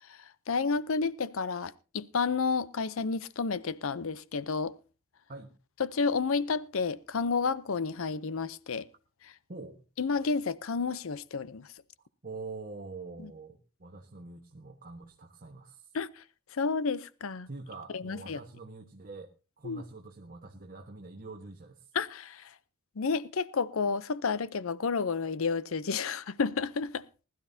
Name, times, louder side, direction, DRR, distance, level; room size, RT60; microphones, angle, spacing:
voice 1, 0.0-4.7 5.8-8.9 9.2-9.3 10.0-11.7 13.2-13.3 15.9-16.2 16.5-17.5 17.9-18.4 19.6-19.8 21.9-22.5 23.0-27.0, left 4 dB, 65° left, 0.6 m, -31 dB
voice 2, 12.2-15.9 17.5-21.9, right 3 dB, 40° right, 1.3 m, -45 dB
20.5 x 12.5 x 2.7 m
head